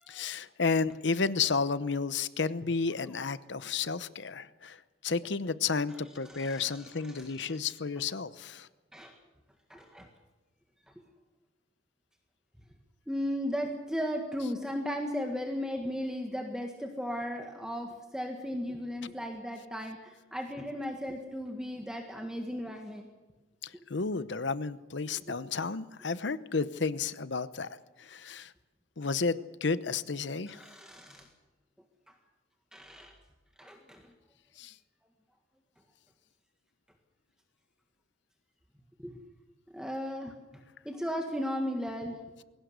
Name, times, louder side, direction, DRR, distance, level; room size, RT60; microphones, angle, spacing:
voice 1, 0.1-8.7 23.6-27.7 28.0-28.5 29.0-30.6 34.6-34.7, left 4 dB, 65° left, 15 dB, 0.9 m, -32 dB
voice 2, 6.2-7.6 8.9-9.1 9.7-10.1 13.1-23.1 25.3-25.4 30.5-31.3 32.7-33.1 33.6-34.1 39.0-39.2 39.7-40.4 40.8-42.2, equal, 5° right, 3 dB, 1.7 m, -36 dB
21.5 x 18.0 x 8.1 m, 1.2 s
head